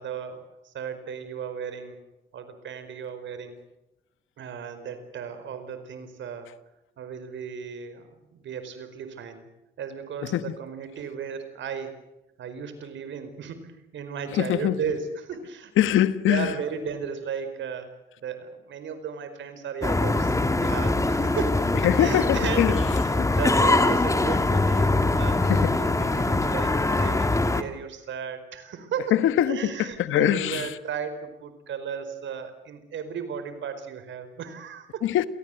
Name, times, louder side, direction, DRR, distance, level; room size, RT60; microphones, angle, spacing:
voice 1, 0.0-2.0 2.3-3.6 4.4-6.5 7.0-9.5 9.8-12.0 12.4-15.9 16.3-17.9 18.2-29.2 29.5-35.0, right 6 dB, 70° right, 4.9 m, -35 dB
voice 2, 14.3-14.8 15.8-16.5 21.8-22.8 23.2-23.3 25.5-25.7 29.1-30.7 35.0-35.3, left 12 dB, 80° left, 1.4 m, -23 dB
sound 1, 19.8-27.6, left 2 dB, 15° left, 2.0 m, -23 dB
28.0 x 19.0 x 7.9 m
cardioid pair, 90°, 20 cm